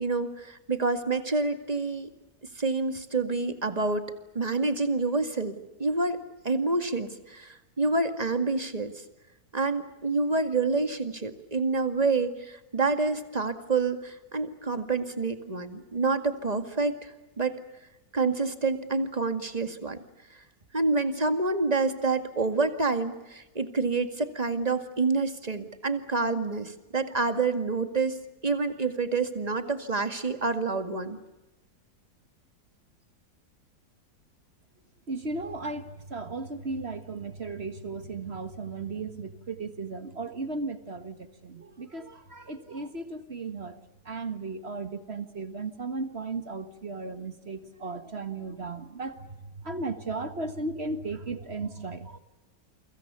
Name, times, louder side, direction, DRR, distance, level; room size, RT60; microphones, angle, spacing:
voice 1, 0.0-2.1 2.6-4.0 4.3-9.0 9.5-17.6 18.1-20.0 20.3-20.4 20.7-28.2 28.4-31.2, right 3 dB, 25° right, 9 dB, 2.0 m, -28 dB
voice 2, 35.1-43.8 44.1-52.2, right 3 dB, 40° right, 10 dB, 1.7 m, -36 dB
29.5 x 24.5 x 6.9 m, 1.0 s
omnidirectional pair, 1.8 m